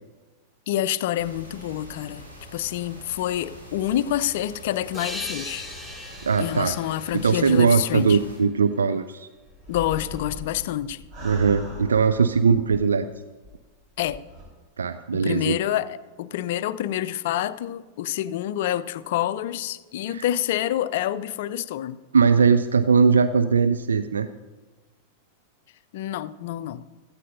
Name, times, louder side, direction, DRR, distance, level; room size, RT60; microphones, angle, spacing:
voice 1, 0.7-2.2 2.5-5.7 6.4-8.2 9.7-11.1 14.0-14.2 15.1-22.0 25.9-26.9, left 12 dB, 55° left, 0.5 m, -27 dB
sound 1, 1.1-8.4, equal, 85° right, 4.9 m, -44 dB
sound 2, 4.9-8.4, left 1 dB, 5° right, 4.6 m, -39 dB
voice 2, 6.2-6.7 7.2-9.3 11.2-13.1 14.8-15.6 20.1-20.3 22.1-24.3, right 5 dB, 70° right, 0.4 m, -20 dB
sound 3, 9.5-13.1 13.4-13.5 14.0-14.4, left 1 dB, 35° right, 4.4 m, -40 dB
16.5 x 14.0 x 2.7 m
figure-of-eight pair, 90°, 0 cm